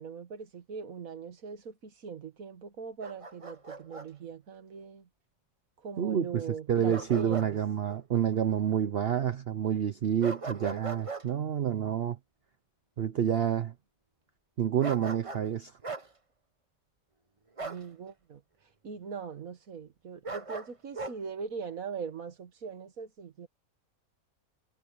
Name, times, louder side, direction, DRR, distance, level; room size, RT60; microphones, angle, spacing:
voice 1, 0.0-5.1 5.8-7.6 17.6-18.4 18.8-23.5, right 6 dB, 80° right, 1.9 m, -41 dB
Bark, 3.0-4.1 6.9-7.5 7.9-8.0 10.2-11.3 14.8-15.5 15.8-16.1 17.6-17.9 20.2-21.2, right 3 dB, 25° right, 1.3 m, -39 dB
voice 2, 6.0-12.2 13.0-13.7 14.6-15.7, right 9 dB, 55° right, 0.8 m, -28 dB
omnidirectional pair, 1.4 m